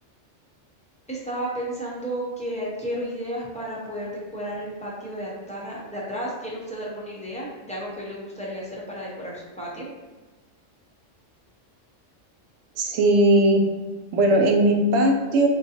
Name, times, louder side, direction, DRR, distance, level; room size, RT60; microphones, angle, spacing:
voice 1, 1.1-9.9, equal, 10° left, -6 dB, 0.4 m, -33 dB
voice 2, 12.8-13.6 14.1-15.5, right 1 dB, 85° right, 2 dB, 1.0 m, -18 dB
3.7 x 2.5 x 2.8 m, 1.2 s
omnidirectional pair, 1.3 m